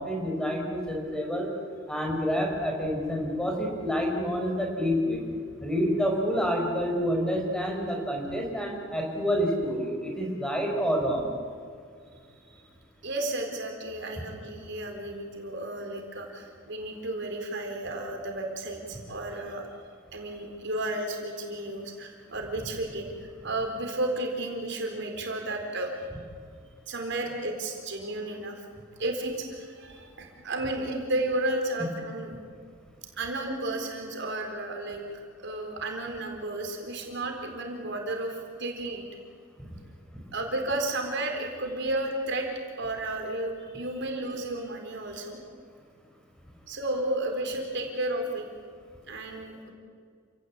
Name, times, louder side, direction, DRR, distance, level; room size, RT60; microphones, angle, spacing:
voice 1, 0.0-1.5 1.9-5.2 5.6-11.2 39.6-39.7, equal, 5° left, 0 dB, 4.7 m, -28 dB
voice 2, 13.0-19.8 20.1-23.1 23.4-25.9 26.9-28.6 29.0-32.3 33.2-35.0 35.4-39.0 40.3-42.5 42.8-45.4 46.7-48.5 49.1-49.7, right 1 dB, 60° right, 2 dB, 4.1 m, -32 dB
29.0 x 17.5 x 8.5 m, 2.1 s
head